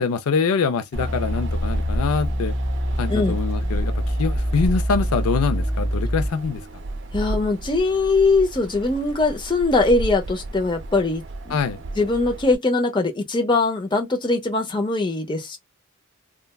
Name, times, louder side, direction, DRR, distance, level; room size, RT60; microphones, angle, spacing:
voice 1, 0.0-2.5 3.0-6.6 11.5-11.8, left 5 dB, 80° left, 0.4 m, -24 dB
sound 1, 0.9-6.3, equal, 40° left, 1.8 m, -25 dB
Wind, 0.9-12.6, right 1 dB, 55° right, 0.6 m, -33 dB
voice 2, 7.1-11.6 12.0-15.6, left 3 dB, 20° left, 0.6 m, -21 dB
3.2 x 2.2 x 2.2 m
head